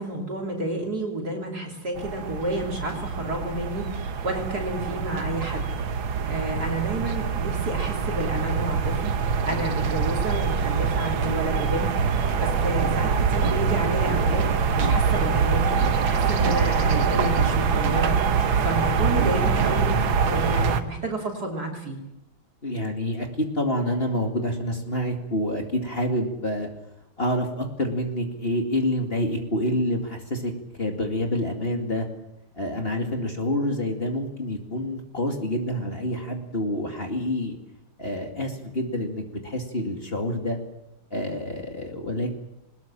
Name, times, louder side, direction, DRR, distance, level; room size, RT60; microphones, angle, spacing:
voice 1, 0.0-5.7 6.2-18.2 18.6-22.0, right 1 dB, 50° right, 0 dB, 3.7 m, -30 dB
sound 1, 2.0-20.8, right 6 dB, 80° right, 2.0 m, -24 dB
voice 2, 22.6-26.7 27.2-30.5 30.8-32.1 32.6-37.6 38.0-40.6 41.1-42.4, left 1 dB, 30° left, 3 dB, 2.4 m, -27 dB
21.5 x 20.0 x 7.5 m, 0.89 s
omnidirectional pair, 2.2 m